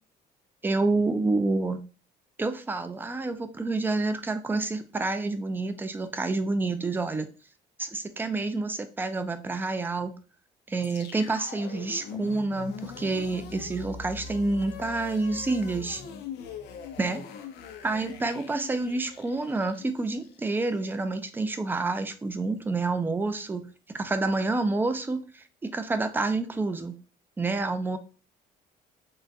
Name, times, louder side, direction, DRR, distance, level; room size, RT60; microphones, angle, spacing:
voice 1, 0.6-1.8 2.4-7.3 7.8-10.2 10.7-16.0 17.0-17.2 17.8-27.0 27.4-28.0, right 3 dB, 10° right, 9 dB, 0.4 m, -28 dB
sound 1, 10.8-21.0, left 6 dB, 80° left, 0.5 m, -42 dB
3.7 x 2.2 x 2.6 m, 0.36 s
cardioid pair, 110°, 17 cm